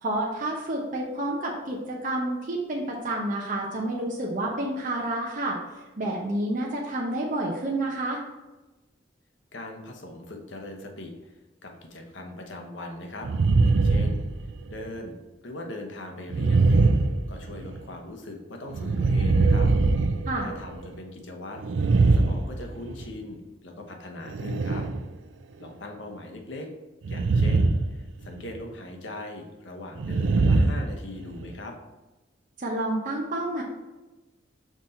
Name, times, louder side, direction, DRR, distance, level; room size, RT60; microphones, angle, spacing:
voice 1, 0.0-8.2 20.3-20.5 32.6-33.6, right 1 dB, 45° right, -2 dB, 0.8 m, -29 dB
voice 2, 9.5-13.3 13.6-16.8 17.3-19.7 20.4-21.6 22.1-24.9 25.6-26.7 27.1-31.7, left 2 dB, 70° left, 2 dB, 1.0 m, -40 dB
sound 1, 13.2-14.9 16.3-17.8 18.7-20.9 21.6-23.1 24.3-25.0 27.0-28.0 28.2-28.6 30.0-31.5, right 3 dB, 75° right, 0.4 m, -22 dB
6.0 x 4.0 x 4.3 m, 1.1 s
head